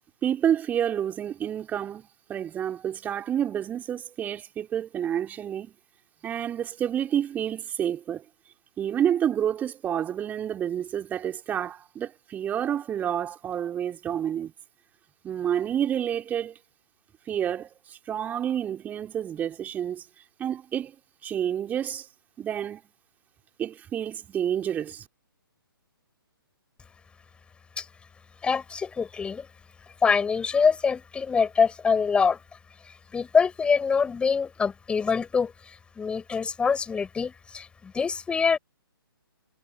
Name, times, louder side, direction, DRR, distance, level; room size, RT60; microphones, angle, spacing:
voice 1, 0.2-5.7 6.2-8.2 8.8-14.5 15.2-16.6 17.3-20.0 20.4-20.9 21.2-22.1 22.4-22.8 23.6-25.1, right 9 dB, 15° right, 3.4 m, -29 dB
voice 2, 28.4-29.5 30.0-32.4 33.1-38.6, left 5 dB, 10° left, 4.8 m, -25 dB
figure-of-eight pair, 130°, 12 cm